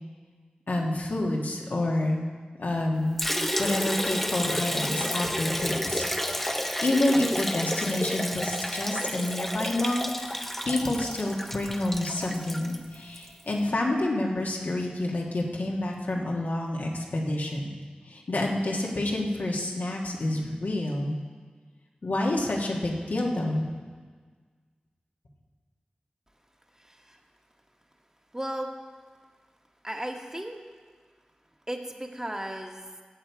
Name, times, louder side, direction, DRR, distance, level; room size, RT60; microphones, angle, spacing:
voice 1, 0.7-2.2 2.6-3.2 3.6-10.1 10.6-17.8 18.1-21.1 22.0-23.6, left 1 dB, 85° left, -2 dB, 1.6 m, -28 dB
Liquid, 3.2-13.3, equal, 5° left, 0.8 m, -31 dB
voice 2, 26.8-27.2 28.3-28.7 29.8-30.6 31.7-32.9, right 1 dB, 20° right, 3 dB, 1.3 m, -35 dB
14.0 x 8.0 x 4.7 m, 1.5 s
wide cardioid pair, 45°, 3 cm